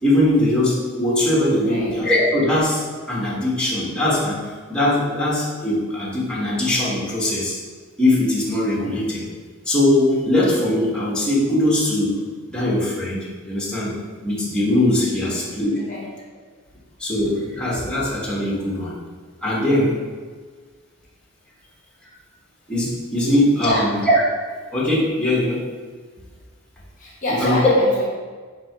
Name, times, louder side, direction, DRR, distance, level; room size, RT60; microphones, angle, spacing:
voice 1, 0.0-2.8 3.1-7.6 8.0-9.2 9.6-12.2 12.5-13.9 14.2-15.7 17.0-19.0 19.4-19.9 22.0-22.1 22.7-24.2 24.7-25.6 27.4-27.7, left 1 dB, 5° left, -7 dB, 1.1 m, -20 dB
voice 2, 1.6-1.9 15.2-15.4 15.8-16.1 23.6-23.9 27.0-28.0, left 1 dB, 40° left, -4 dB, 0.6 m, -27 dB
4.1 x 2.8 x 4.4 m, 1.5 s
head